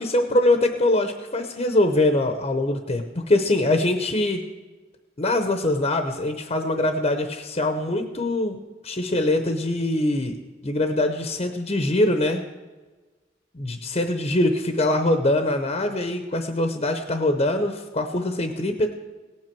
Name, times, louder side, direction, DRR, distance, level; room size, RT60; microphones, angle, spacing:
voice 1, 0.0-4.4 5.2-12.4 13.5-18.9, left 1 dB, 35° left, 6 dB, 0.7 m, -23 dB
18.0 x 8.9 x 4.6 m, 1.3 s
head